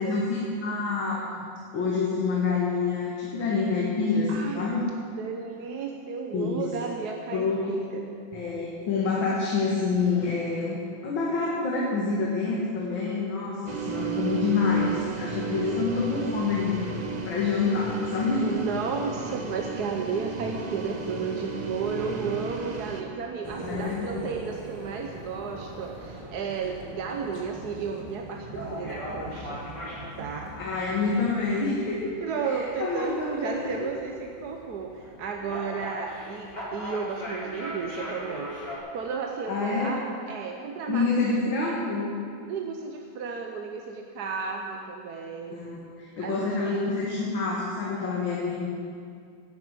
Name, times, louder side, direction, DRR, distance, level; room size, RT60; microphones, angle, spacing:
voice 1, 0.0-1.4 1.7-4.8 6.3-6.6 7.3-7.7 8.3-16.9 17.2-18.6 23.6-24.1 30.6-32.1 32.4-33.9 39.5-39.9 40.9-42.1 45.5-48.7, left 4 dB, 80° left, -4 dB, 2.5 m, -27 dB
voice 2, 4.3-4.7 5.2-8.2 18.4-29.6 30.2-30.6 32.2-38.5 38.9-41.4 42.5-45.6 46.2-46.6, right 5 dB, 60° right, 2 dB, 1.3 m, -33 dB
sound 1, 13.7-23.0, right 5 dB, 30° right, 0.8 m, -34 dB
sound 2, 23.4-31.6, right 1 dB, 15° right, 1.3 m, -41 dB
sound 3, 28.5-38.8, equal, 60° left, 5.1 m, -40 dB
11.0 x 10.5 x 8.1 m, 2.3 s
omnidirectional pair, 2.1 m